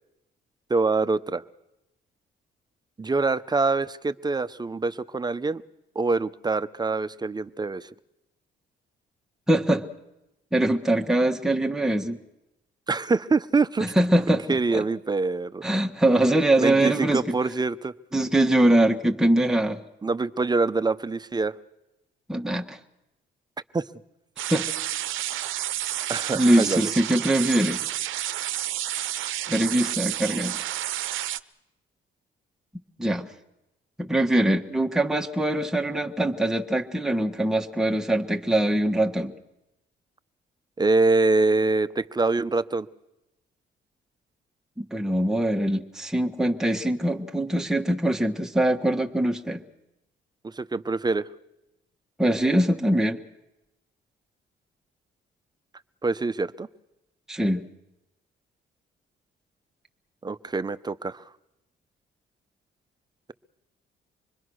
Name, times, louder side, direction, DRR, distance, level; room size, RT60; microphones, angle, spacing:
voice 1, 0.7-1.4 3.0-5.6 5.9-7.9 12.9-13.9 14.5-15.6 16.6-17.9 20.0-21.6 23.7-23.9 26.1-26.9 40.8-42.9 50.4-51.3 56.0-56.7 60.2-61.2, right 3 dB, 20° right, 14 dB, 0.8 m, -25 dB
voice 2, 9.5-9.9 10.5-12.2 13.8-14.8 15.6-17.4 18.1-19.8 22.3-22.8 24.5-24.7 26.3-27.8 29.5-30.7 33.0-33.3 34.0-39.3 44.8-49.6 52.2-53.2 57.3-57.7, right 1 dB, ahead, 2 dB, 1.4 m, -23 dB
sound 1, 24.4-31.4, right 13 dB, 80° right, 0.8 m, -30 dB
26.0 x 21.0 x 6.3 m, 0.92 s
cardioid pair, 90°, 20 cm